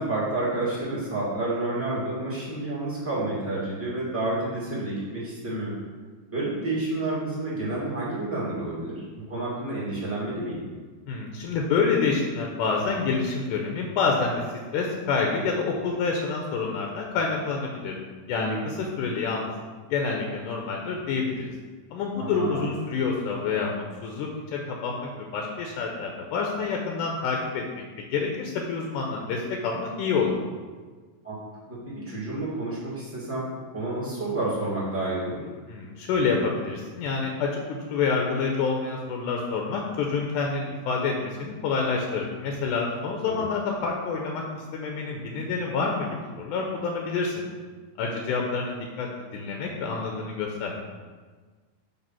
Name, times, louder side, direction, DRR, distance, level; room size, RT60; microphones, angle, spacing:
voice 1, 0.0-5.7 6.3-10.6 18.3-18.7 22.2-22.6 31.2-35.5 43.2-43.4, right 2 dB, 5° right, -8 dB, 1.1 m, -30 dB
voice 2, 11.1-14.4 14.7-18.0 18.3-19.5 19.9-21.5 21.9-27.6 28.1-30.4 35.7-37.6 37.9-46.1 46.4-47.5 48.0-50.8, left 4 dB, 80° left, 1 dB, 2.0 m, -27 dB
6.7 x 3.3 x 5.8 m, 1.4 s
omnidirectional pair, 4.0 m